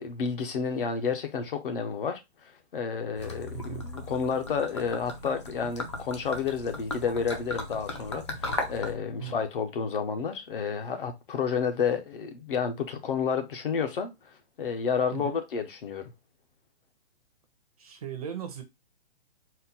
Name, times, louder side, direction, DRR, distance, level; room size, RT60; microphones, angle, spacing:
voice 1, 0.0-2.2 2.7-14.1 14.6-16.1, left 6 dB, 50° left, 0.8 m, -30 dB
Gurgling / Liquid, 3.2-8.9, left 2 dB, 25° left, 0.4 m, -37 dB
voice 2, 3.5-3.8 9.2-9.4 15.1-15.4 17.8-18.6, right 9 dB, 35° right, 0.6 m, -38 dB
4.2 x 2.1 x 3.9 m
hypercardioid pair, 170°, 34 cm